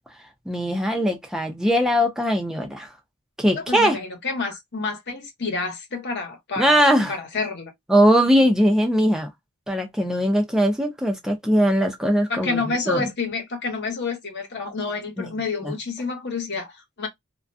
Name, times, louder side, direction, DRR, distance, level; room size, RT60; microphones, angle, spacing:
voice 1, 0.5-2.9 3.4-4.0 6.6-7.2 7.9-9.3 9.7-13.0 15.2-15.3 15.6-15.7, equal, ahead, 0.6 m, -20 dB
voice 2, 3.5-7.7 12.3-17.1, left 4 dB, 50° left, 1.0 m, -29 dB
2.4 x 2.2 x 2.5 m
head